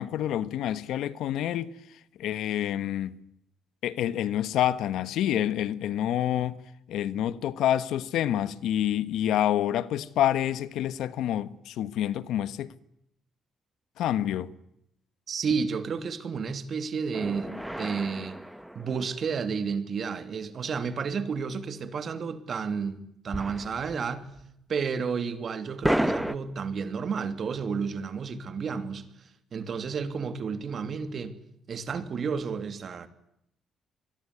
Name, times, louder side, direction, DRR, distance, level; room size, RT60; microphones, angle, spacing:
voice 1, 0.0-1.7 2.2-3.2 3.8-6.6 6.9-12.7 14.0-14.5, left 11 dB, 85° left, 1.3 m, -27 dB
voice 2, 15.3-18.4 18.7-24.3 24.7-31.4 31.7-33.1, right 5 dB, 50° right, 2.9 m, -31 dB
sound 1, 17.1-19.6 23.3-24.1 24.4-24.5 25.8-26.4, equal, 5° right, 1.5 m, -31 dB
25.5 x 22.0 x 9.8 m
cardioid pair, 90°, 0 cm